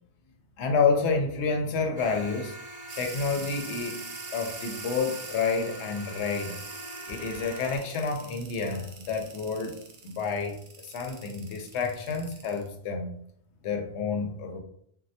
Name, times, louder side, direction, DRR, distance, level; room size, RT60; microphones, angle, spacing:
voice 1, 0.6-2.6 3.0-4.0 4.3-6.5 7.1-9.7 10.0-10.6 10.8-13.2 13.6-14.6, left 4 dB, 85° left, 4 dB, 0.9 m, -29 dB
sound 1, 2.0-7.8, right 1 dB, 35° left, 0.8 m, -43 dB
sound 2, 2.9-12.7, right 5 dB, 70° right, 0.8 m, -44 dB
3.1 x 2.2 x 2.7 m, 0.68 s
omnidirectional pair, 1.1 m